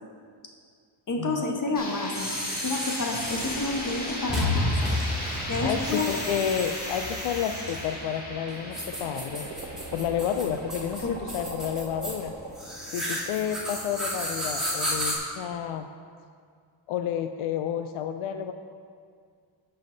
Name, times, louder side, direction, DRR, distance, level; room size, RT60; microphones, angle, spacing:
voice 1, 1.1-4.9 5.5-6.1 11.0-11.1, left 3 dB, 40° left, 1 dB, 1.3 m, -30 dB
sound 1, 1.7-11.5, left 1 dB, 20° left, 2.0 m, -37 dB
sound 2, 2.1-15.2, left 1 dB, ahead, 2.5 m, -32 dB
sound 3, 3.2-8.2 8.6-12.5, right 2 dB, 40° right, 1.2 m, -43 dB
voice 2, 5.6-9.5 9.9-12.3 12.9-15.9 16.9-18.5, left 9 dB, 90° left, 8 dB, 0.5 m, -30 dB
12.5 x 5.7 x 3.9 m, 2.1 s
cardioid pair, 115°, 47 cm